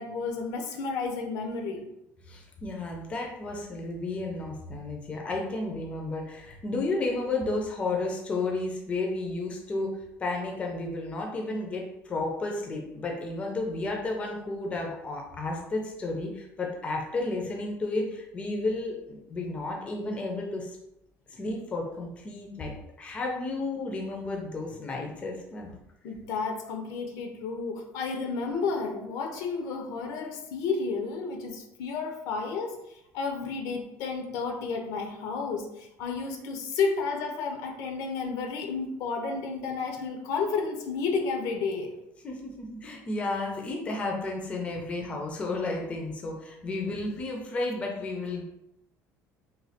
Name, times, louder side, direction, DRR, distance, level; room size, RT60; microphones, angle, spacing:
voice 1, 0.0-1.9 26.0-42.0, left 4 dB, 75° left, 3 dB, 0.5 m, -32 dB
voice 2, 2.2-20.8 21.3-25.7 42.2-48.4, left 2 dB, 20° left, 1 dB, 0.4 m, -32 dB
3.0 x 2.2 x 2.7 m, 0.84 s
cardioid pair, 170°, 6 cm